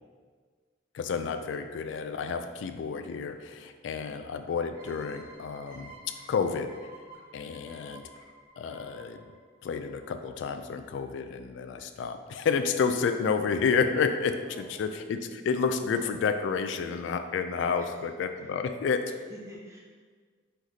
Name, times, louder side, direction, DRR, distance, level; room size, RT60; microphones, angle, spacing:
voice 1, 0.9-6.7 7.3-8.0 8.6-9.2 9.6-19.1, left 5 dB, 80° left, 8 dB, 0.3 m, -30 dB
sound 1, 4.7-10.2, right 2 dB, 45° right, 1.0 m, -52 dB
voice 2, 14.4-15.0 17.8-17.9 18.4-18.5 19.1-19.8, equal, 15° right, -3 dB, 0.6 m, -50 dB
5.7 x 3.2 x 2.7 m, 1.5 s
head